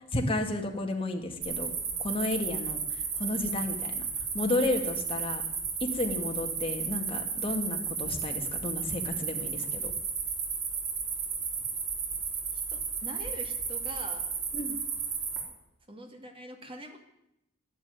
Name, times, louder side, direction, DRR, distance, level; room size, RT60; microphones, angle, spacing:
voice 1, 0.1-1.7 2.0-4.1 4.3-5.4 5.8-9.9 14.5-14.8, left 2 dB, 30° left, 3 dB, 2.1 m, -32 dB
sound 1, 1.4-15.4, right 6 dB, 80° right, 4.1 m, -33 dB
voice 2, 12.5-14.3 15.9-17.0, right 1 dB, 25° right, 5 dB, 2.4 m, -44 dB
12.5 x 11.5 x 9.7 m, 0.82 s
head